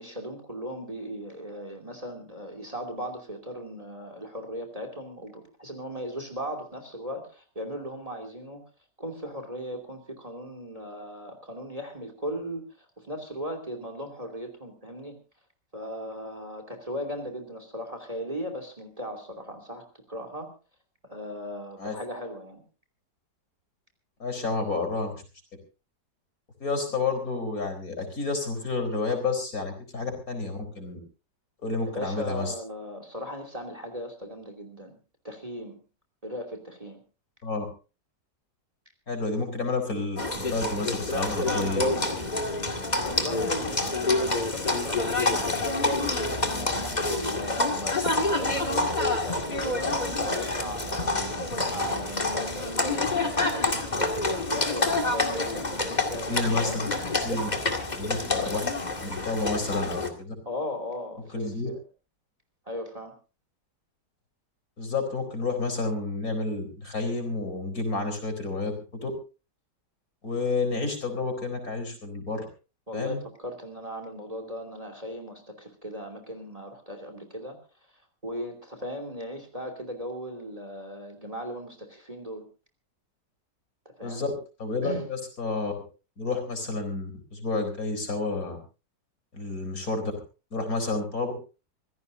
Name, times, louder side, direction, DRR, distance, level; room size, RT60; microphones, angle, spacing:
voice 1, 0.0-8.6 9.0-12.6 13.0-15.2 15.7-20.5 21.0-22.6 31.9-35.0 35.2-35.8 36.2-37.0 43.0-51.2 51.7-56.8 60.5-61.8 62.7-63.1 72.9-77.6 78.2-82.4 83.8-84.2 84.8-85.0, equal, 20° right, 6 dB, 2.8 m, -37 dB
voice 2, 24.2-25.1 26.6-31.0 31.6-32.5 37.4-37.6 39.1-42.1 42.4-42.6 56.3-56.9 57.2-57.5 57.9-58.6 59.0-60.3 61.3-61.7 64.8-69.1 70.2-72.5 72.9-73.2 84.0-85.7 86.2-88.6 89.3-90.1 90.5-91.3, left 3 dB, 50° left, 6 dB, 4.6 m, -30 dB
Livestock farm animals working animals, 40.2-60.1, left 2 dB, 25° left, 2.2 m, -27 dB
26.0 x 16.0 x 2.6 m, 0.33 s
omnidirectional pair, 1.9 m